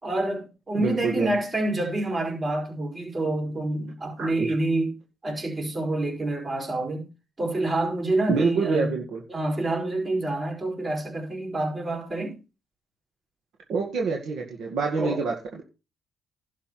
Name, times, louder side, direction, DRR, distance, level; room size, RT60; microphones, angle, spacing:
voice 1, 0.0-4.9 5.2-7.1 7.4-8.9 9.3-12.4 15.0-15.2, right 2 dB, 30° right, 4.5 m, -27 dB
voice 2, 0.8-1.3 4.2-4.5 8.3-9.2 13.7-15.6, right 4 dB, 65° right, 2.0 m, -27 dB
11.5 x 4.8 x 6.0 m
supercardioid pair, 60°, 0 cm